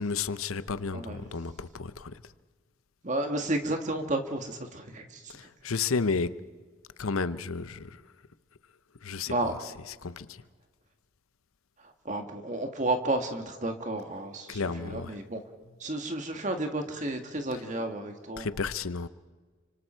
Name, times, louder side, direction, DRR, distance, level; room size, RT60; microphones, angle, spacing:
voice 1, 0.0-2.2 5.3-6.4 7.0-8.0 9.0-9.3 10.0-10.4 14.5-15.1 18.4-19.1, left 4 dB, 85° left, 0.8 m, -32 dB
voice 2, 0.9-1.3 3.0-5.3 9.3-9.6 11.8-15.4 15.8-18.5, right 2 dB, 35° right, 2.0 m, -32 dB
29.5 x 25.5 x 4.5 m
head